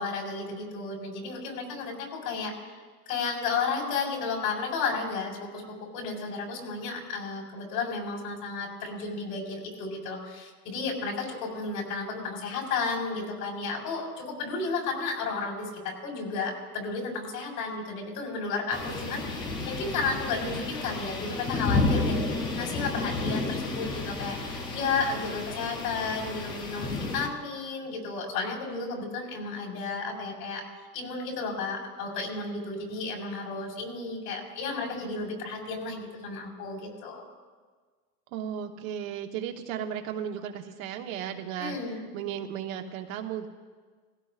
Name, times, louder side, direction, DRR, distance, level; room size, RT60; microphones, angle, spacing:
voice 1, 0.0-2.5 3.1-30.6 30.9-37.2 41.6-42.1, left 4 dB, 75° left, -1 dB, 4.5 m, -33 dB
sound 1, 18.7-27.3, left 3 dB, 10° left, 0.3 m, -31 dB
voice 2, 38.3-41.8 42.1-43.5, right 9 dB, 55° right, 5 dB, 1.2 m, -35 dB
18.5 x 16.0 x 2.5 m, 1.5 s
supercardioid pair, 140°, 48 cm